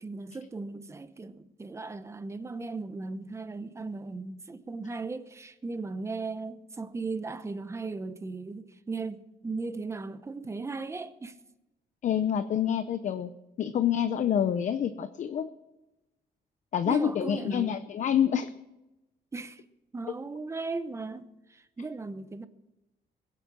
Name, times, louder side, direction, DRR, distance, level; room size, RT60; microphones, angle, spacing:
voice 1, 0.0-11.4 16.8-17.7 19.3-19.6 19.9-22.5, right 3 dB, 15° right, 0.8 m, -37 dB
voice 2, 12.0-13.3 13.6-15.5 16.7-18.5, left 9 dB, 50° left, 0.7 m, -27 dB
21.5 x 8.3 x 7.4 m
cardioid pair, 165°, 16 cm